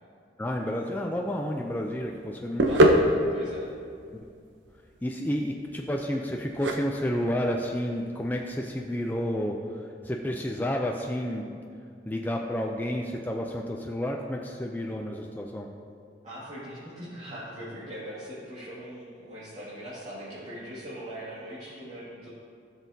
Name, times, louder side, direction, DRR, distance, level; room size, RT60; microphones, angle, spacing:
voice 1, 0.4-2.7 5.0-11.6 12.1-15.7, equal, 10° left, 1 dB, 0.4 m, -30 dB
sound 1, 1.3-9.2, equal, 90° right, 0.7 m, -27 dB
voice 2, 2.5-3.7 16.2-22.3, equal, 40° right, -12 dB, 2.0 m, -41 dB
14.5 x 6.3 x 2.7 m, 2.3 s
head